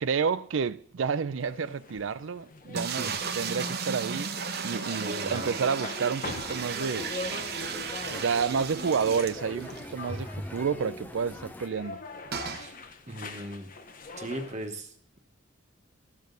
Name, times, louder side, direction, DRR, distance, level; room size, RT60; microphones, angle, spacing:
voice 1, 0.0-4.4 4.6-7.1 8.1-12.0, right 6 dB, 80° right, 0.5 m, -30 dB
sound 1, 1.4-14.7, left 3 dB, 45° left, 0.9 m, -43 dB
sound 2, 2.7-9.9 10.2-10.3 10.6-10.7 12.3-12.7, right 5 dB, 55° right, 0.9 m, -34 dB
voice 2, 5.0-5.5 12.6-12.7 13.1-13.7 14.2-15.2, right 1 dB, 35° right, 1.2 m, -38 dB
sound 3, 6.4-11.7, left 1 dB, 10° left, 0.6 m, -43 dB
13.5 x 7.4 x 3.9 m
head